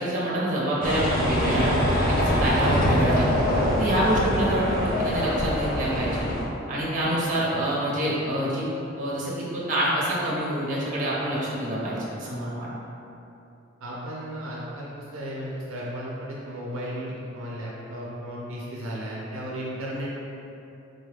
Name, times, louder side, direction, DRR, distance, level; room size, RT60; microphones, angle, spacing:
voice 1, 0.0-3.3 3.8-6.3 6.7-8.6 9.0-12.7, right 1 dB, 40° right, -6 dB, 0.9 m, -26 dB
sound 1, 0.8-6.5, equal, 45° left, 0.6 m, -24 dB
voice 2, 3.1-3.5 13.8-20.1, equal, 80° right, -5 dB, 0.5 m, -35 dB
4.0 x 2.3 x 3.3 m, 2.8 s
head